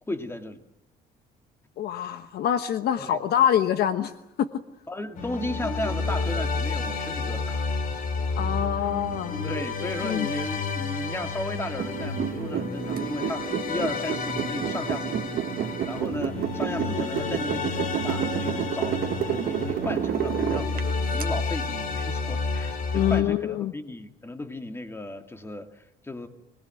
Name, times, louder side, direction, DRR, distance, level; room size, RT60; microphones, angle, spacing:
voice 1, 0.1-0.6 3.0-3.2 4.9-7.6 8.8-8.9 9.4-19.0 19.3-26.3, left 2 dB, 15° left, 6 dB, 2.4 m, -35 dB
voice 2, 1.8-4.1 4.4-4.5 8.4-9.4 10.0-10.3 22.9-23.7, left 10 dB, 70° left, 11 dB, 1.3 m, -25 dB
sound 1, 5.1-23.2, left 4 dB, 55° left, 3.1 m, -30 dB
sound 2, 11.8-21.2, right 10 dB, 60° right, 1.6 m, -30 dB
24.5 x 19.0 x 9.2 m, 0.81 s
cardioid pair, 110°, 17 cm